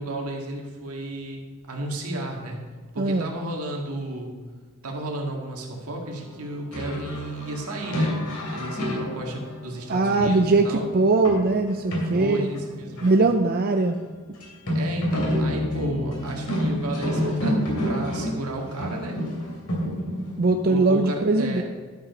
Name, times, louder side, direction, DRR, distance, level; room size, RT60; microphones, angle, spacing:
voice 1, 0.0-1.4 1.7-2.6 2.9-4.3 4.8-8.2 8.5-10.9 12.1-13.1 14.7-19.2 20.6-21.6, right 1 dB, 80° right, 0 dB, 1.9 m, -33 dB
voice 2, 3.0-3.3 9.9-12.5 13.0-14.0 20.4-21.6, right 3 dB, 40° right, 5 dB, 0.5 m, -21 dB
sound 1, 6.7-13.4 13.7-13.8 14.0-14.1 14.4-20.7, equal, 85° left, 3.0 m, -28 dB
11.5 x 5.5 x 5.2 m, 1.5 s
head